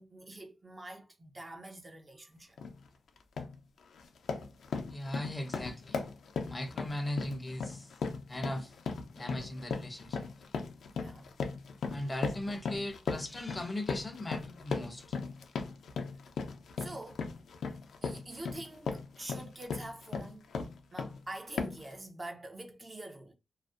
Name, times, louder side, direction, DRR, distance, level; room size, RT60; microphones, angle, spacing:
voice 1, 0.0-2.6 10.9-11.3 16.8-17.3 18.0-20.5 20.9-23.3, right 2 dB, 35° right, 0.6 m, -46 dB
sound 1, 2.6-2.8 3.2-3.6 3.9-21.2 21.6-21.9, left 5 dB, 75° left, 0.4 m, -38 dB
voice 2, 4.9-6.0 6.5-7.9 8.3-8.8 9.1-10.3 11.9-15.2, left 1 dB, 25° left, 0.5 m, -38 dB
2.5 x 2.0 x 2.4 m
cardioid pair, 60°, 0 cm